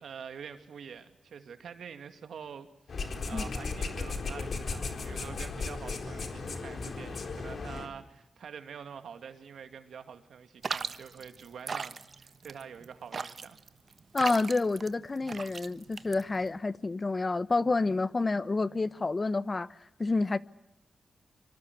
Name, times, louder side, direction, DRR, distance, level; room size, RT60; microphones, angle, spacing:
voice 1, 0.0-2.7 2.9-13.6, right 7 dB, 80° right, 2.6 m, -46 dB
sound 1, 2.9-7.9, left 4 dB, 60° left, 4.3 m, -36 dB
sound 2, 10.6-16.6, right 5 dB, 55° right, 1.3 m, -38 dB
voice 2, 14.1-20.4, left 3 dB, 35° left, 1.1 m, -29 dB
25.5 x 25.0 x 8.2 m
cardioid pair, 65°, 0 cm